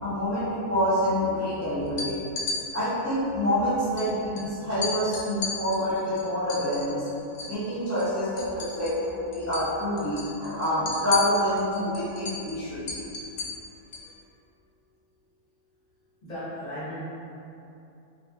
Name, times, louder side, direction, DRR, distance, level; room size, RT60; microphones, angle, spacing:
voice 1, 0.0-2.1 2.7-7.1 7.4-13.0, equal, 20° right, -14 dB, 0.4 m, -27 dB
sound 1, 1.9-2.6 4.0-4.1 4.4-4.5 4.8-7.6 7.9-9.1 9.3-9.7 10.0-14.1, left 4 dB, 75° left, 0.6 m, -34 dB
voice 2, 13.8-14.2 16.2-17.0, left 1 dB, 35° left, -13 dB, 0.8 m, -38 dB
3.3 x 2.6 x 2.3 m, 2.7 s
omnidirectional pair, 1.6 m